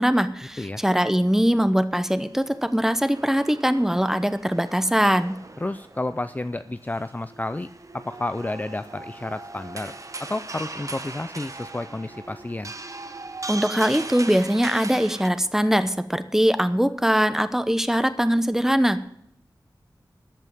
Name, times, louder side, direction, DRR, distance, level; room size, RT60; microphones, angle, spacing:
voice 1, 0.0-5.4 13.5-19.0, equal, 5° right, 11 dB, 0.9 m, -22 dB
sound 1, 2.1-15.3, right 2 dB, 40° right, 0.9 m, -39 dB
voice 2, 5.6-7.7 7.9-9.9 10.3-12.7, left 2 dB, 20° left, 12 dB, 0.4 m, -31 dB
14.5 x 5.5 x 9.0 m, 0.73 s
wide cardioid pair, 80°, 8 cm